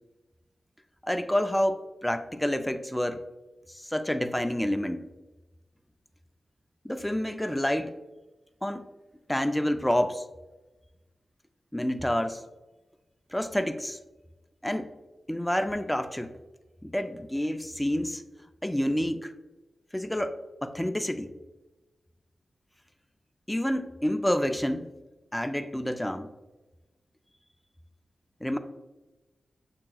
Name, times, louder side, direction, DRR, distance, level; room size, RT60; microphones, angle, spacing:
voice 1, 1.0-3.2 3.7-5.1 6.8-8.0 8.6-8.8 9.3-10.2 11.7-12.4 13.3-14.0 14.6-14.9 15.3-16.3 16.8-18.2 18.6-19.3 19.9-20.4 20.6-21.3 23.5-24.9 25.3-26.3 28.4-28.6, left 1 dB, 5° left, 8 dB, 0.3 m, -28 dB
7.5 x 2.9 x 2.2 m, 1.1 s
wide cardioid pair, 95°, 0 cm